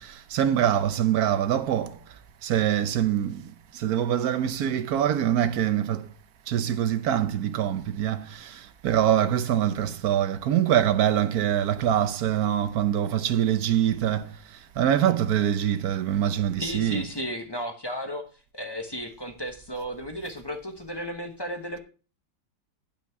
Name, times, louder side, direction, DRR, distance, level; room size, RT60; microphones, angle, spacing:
voice 1, 0.3-1.9 2.4-3.4 3.8-6.0 6.5-8.2 8.8-14.2 14.8-17.0, right 10 dB, 65° right, 1.1 m, -24 dB
voice 2, 16.6-18.2 18.5-21.8, equal, 15° left, 1.0 m, -34 dB
10.5 x 5.9 x 4.6 m
omnidirectional pair, 2.0 m